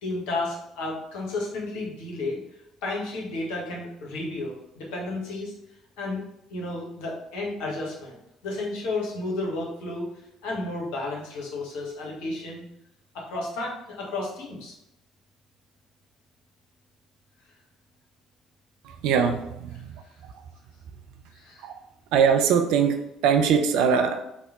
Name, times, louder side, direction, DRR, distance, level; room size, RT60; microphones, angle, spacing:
voice 1, 0.0-2.4 2.8-5.5 6.0-6.2 6.5-8.1 8.4-10.1 10.4-12.6 13.1-14.7 21.3-21.7, left 2 dB, 65° left, -2 dB, 0.8 m, -32 dB
voice 2, 18.8-20.0 21.6-21.7 22.1-24.2, right 7 dB, 65° right, 6 dB, 0.3 m, -22 dB
2.9 x 2.1 x 3.6 m, 0.83 s
figure-of-eight pair, 50°, 0 cm